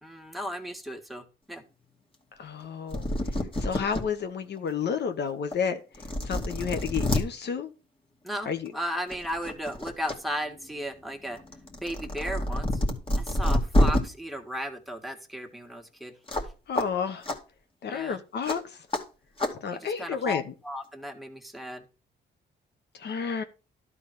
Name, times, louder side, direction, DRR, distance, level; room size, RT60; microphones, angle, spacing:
voice 1, 0.0-1.6 8.2-11.4 11.8-12.8 13.2-16.1 17.9-18.2 19.7-21.8, equal, ahead, 1.7 m, -35 dB
voice 2, 2.4-3.1 3.6-5.8 6.2-7.7 8.5-8.7 16.7-17.2 17.8-18.6 19.6-20.4 23.0-23.4, left 6 dB, 60° left, 1.1 m, -30 dB
sound 1, 2.6-2.7 2.9-4.0 4.6-4.7 5.5-5.6 5.9-7.2 8.5-8.7 9.1-10.2 10.5-14.0 16.3-16.5 16.8-16.9 17.2-17.4 18.4-18.6 18.9-19.0 19.4-19.5, left 1 dB, 25° left, 2.3 m, -27 dB
12.0 x 4.1 x 5.9 m
cardioid pair, 90°, 20 cm